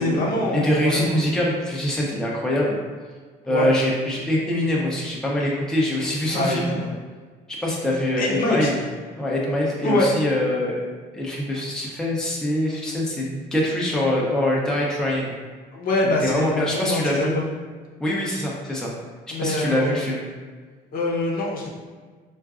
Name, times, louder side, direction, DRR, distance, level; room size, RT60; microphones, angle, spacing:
voice 1, 0.0-1.3 3.5-3.7 6.3-6.9 8.2-8.7 9.8-10.1 15.7-17.5 19.3-19.9 20.9-21.7, left 2 dB, 60° left, -2 dB, 0.7 m, -24 dB
voice 2, 0.5-2.8 3.5-6.8 7.5-8.8 9.2-10.8 11.1-15.3 16.0-17.3 18.0-18.9 19.4-20.2, left 1 dB, 5° left, -4 dB, 0.6 m, -24 dB
3.7 x 2.4 x 2.4 m, 1.5 s
cardioid pair, 110°, 17 cm